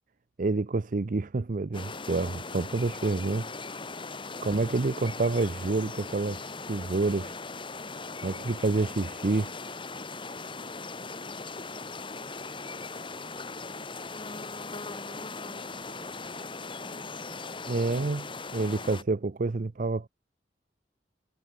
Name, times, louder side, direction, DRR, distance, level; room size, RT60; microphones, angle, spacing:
voice 1, 0.4-3.5 4.4-7.3 8.2-9.5 17.7-20.1, right 3 dB, 45° right, 0.5 m, -28 dB
sound 1, 1.7-19.0, left 3 dB, 30° left, 2.1 m, -39 dB
voice 2, 4.0-4.4 12.7-13.0 14.7-17.7, right 1 dB, 30° right, 6.7 m, -56 dB
head